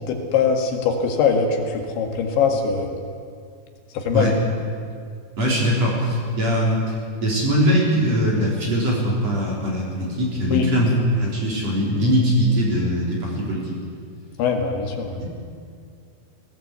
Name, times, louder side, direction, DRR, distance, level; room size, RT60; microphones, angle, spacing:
voice 1, 0.1-2.9 4.0-4.3 10.5-10.7 14.4-15.2, left 6 dB, 80° left, 3 dB, 4.2 m, -22 dB
voice 2, 5.4-6.8 7.2-13.8 15.2-15.3, equal, 35° right, -3 dB, 4.6 m, -21 dB
19.5 x 17.5 x 8.2 m, 2.2 s
omnidirectional pair, 5.2 m